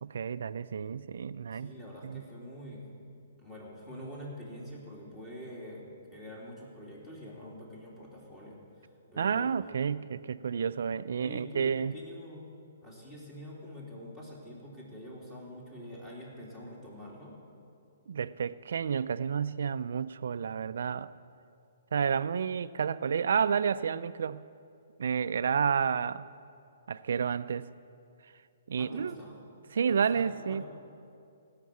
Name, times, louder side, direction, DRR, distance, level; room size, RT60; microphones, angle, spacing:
voice 1, 0.0-1.7 2.0-2.2 9.2-11.9 18.1-21.1 21.9-24.4 25.0-26.3 26.9-27.7 28.7-29.2 29.7-30.6, right 7 dB, 70° right, 14 dB, 0.4 m, -30 dB
voice 2, 1.5-3.0 3.4-5.8 6.1-8.6 9.1-9.5 10.8-11.0 11.2-12.5 12.8-17.4 28.8-29.4 29.9-30.6, equal, 15° left, -4 dB, 3.2 m, -45 dB
16.5 x 6.6 x 8.6 m, 2.5 s
hypercardioid pair, 145°, 0 cm